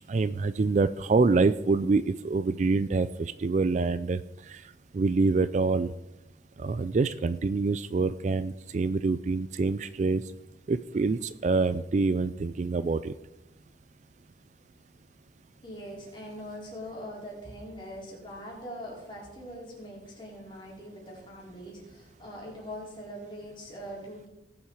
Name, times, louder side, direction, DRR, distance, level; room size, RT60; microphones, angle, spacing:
voice 1, 0.1-4.6 4.9-5.9 6.6-10.2 10.7-13.1, right 3 dB, 40° right, 14 dB, 0.3 m, -26 dB
voice 2, 15.6-24.3, equal, 25° left, -3 dB, 4.1 m, -42 dB
18.5 x 7.3 x 4.7 m, 0.98 s
head